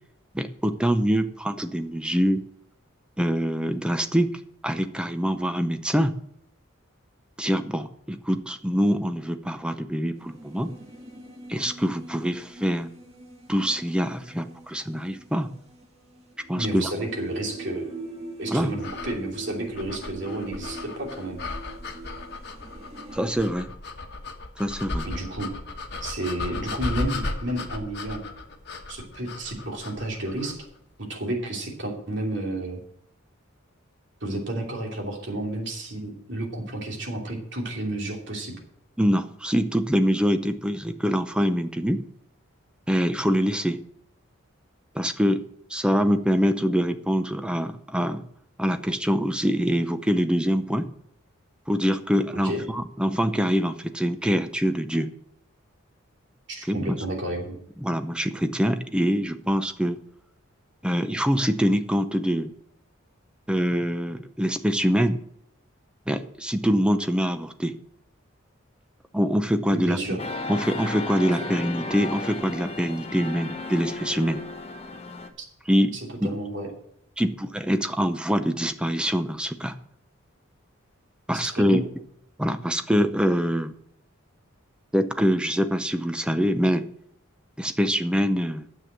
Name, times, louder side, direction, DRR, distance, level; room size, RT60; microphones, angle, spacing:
voice 1, 0.3-2.4 3.2-6.1 7.4-10.7 11.5-12.9 13.5-15.5 16.5-16.9 18.5-18.7 23.1-23.7 24.6-25.1 39.0-42.0 42.9-43.8 44.9-45.4 45.7-48.2 48.6-50.9 51.7-55.1 56.7-57.0 57.8-60.0 60.8-62.5 63.5-65.2 66.1-67.7 69.1-70.0 70.5-74.4 75.7-76.3 77.2-79.8 81.3-81.8 82.4-83.7 84.9-86.8 87.6-88.7, equal, 5° right, 9 dB, 0.6 m, -24 dB
sound 1, 10.2-23.5, right 1 dB, 30° right, 1.7 m, -42 dB
voice 2, 16.5-17.9 18.4-21.4 25.0-25.5 26.0-28.2 28.9-30.6 31.0-32.8 34.2-38.6 52.4-52.7 56.5-57.6 69.7-70.2 75.9-76.7 81.3-81.8, right 1 dB, 60° right, 0 dB, 2.9 m, -31 dB
sound 2, 18.8-30.7, left 2 dB, 50° left, 1.4 m, -35 dB
sound 3, 70.2-75.3, left 3 dB, 30° left, 0.9 m, -34 dB
9.8 x 7.6 x 7.4 m, 0.72 s
head